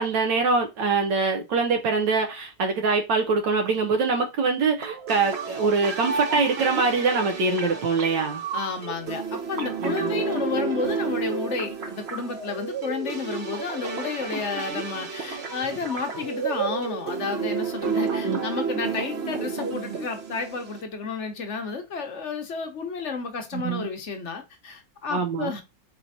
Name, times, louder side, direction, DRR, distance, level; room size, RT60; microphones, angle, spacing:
voice 1, 0.0-8.4 9.8-10.1 18.2-18.4 23.5-23.9 25.1-25.5, right 4 dB, 80° right, 1.5 m, -24 dB
sound 1, 4.8-20.8, right 5 dB, 50° right, 0.8 m, -31 dB
voice 2, 8.5-25.6, left 5 dB, 50° left, 1.0 m, -31 dB
4.4 x 4.1 x 2.6 m
omnidirectional pair, 1.9 m